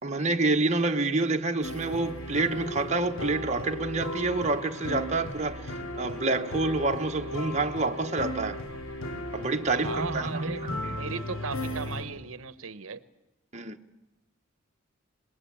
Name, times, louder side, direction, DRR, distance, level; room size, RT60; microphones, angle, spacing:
voice 1, 0.0-8.6 9.3-10.8 13.5-13.8, right 3 dB, 35° right, 1.1 m, -28 dB
sound 1, 1.6-12.0, left 1 dB, 70° left, 3.2 m, -36 dB
voice 2, 9.7-13.0, right 5 dB, 85° right, 0.9 m, -37 dB
25.5 x 20.5 x 8.5 m
head